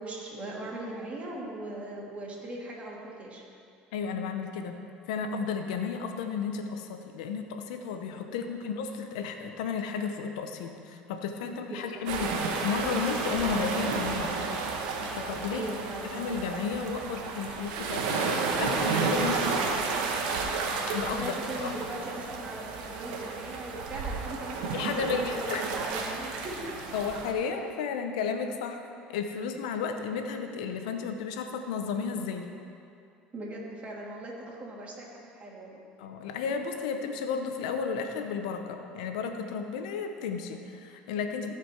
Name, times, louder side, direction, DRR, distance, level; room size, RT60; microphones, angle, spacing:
voice 1, 0.0-3.4 8.3-8.5 11.7-11.8 15.5-16.0 21.1-26.7 33.3-35.8, right 1 dB, 35° right, -4 dB, 2.7 m, -39 dB
voice 2, 3.9-4.8 5.1-14.4 15.2-15.6 16.1-19.7 20.9-21.3 21.6-21.7 24.7-25.6 26.9-28.8 29.1-32.5 36.0-41.5, left 6 dB, 85° left, 5 dB, 0.9 m, -33 dB
sound 1, 12.1-27.3, right 4 dB, 85° right, 1.1 m, -32 dB
15.5 x 5.1 x 4.5 m, 2.5 s
supercardioid pair, 85°, 4 cm